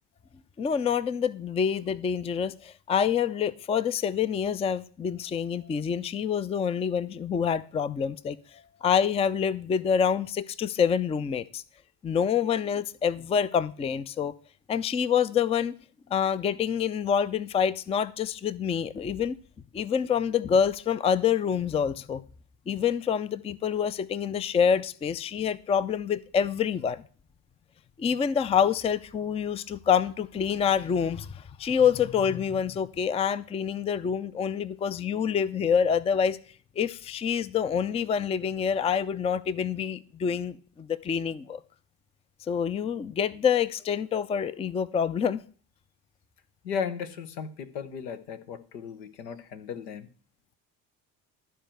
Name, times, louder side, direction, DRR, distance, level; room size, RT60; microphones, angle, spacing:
voice 1, 0.6-8.4 8.8-11.6 12.0-14.3 14.7-15.8 16.1-19.4 19.7-22.2 22.7-27.0 28.0-36.4 36.8-41.6 42.5-45.4, left 7 dB, 15° left, 0.4 m, -26 dB
voice 2, 46.6-50.1, left 7 dB, 80° left, 1.0 m, -35 dB
12.5 x 4.5 x 6.4 m
hypercardioid pair, 60°, 48 cm